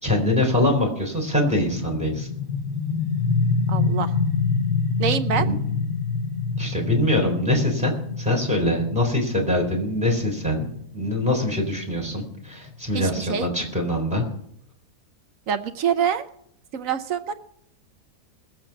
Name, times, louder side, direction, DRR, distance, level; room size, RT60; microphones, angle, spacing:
voice 1, 0.0-2.3 5.3-5.6 6.6-14.3, left 1 dB, 5° right, 0 dB, 3.8 m, -23 dB
sound 1, 1.4-12.9, left 4 dB, 35° left, 4.8 m, -27 dB
voice 2, 3.7-4.1 5.0-5.5 12.9-13.5 15.5-16.3 16.7-17.3, right 8 dB, 65° right, 9 dB, 1.0 m, -25 dB
20.0 x 7.8 x 6.0 m, 0.69 s
omnidirectional pair, 1.7 m